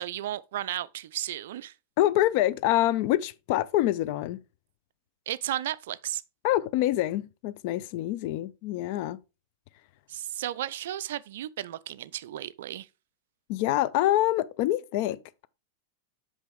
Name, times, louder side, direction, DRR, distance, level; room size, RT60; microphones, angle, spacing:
voice 1, 0.0-1.7 5.3-6.2 10.1-12.9, right 12 dB, 55° right, 0.3 m, -34 dB
voice 2, 2.0-4.4 6.4-9.2 13.5-15.5, left 14 dB, 45° left, 0.3 m, -26 dB
5.9 x 5.3 x 3.4 m
figure-of-eight pair, 90°, 0 cm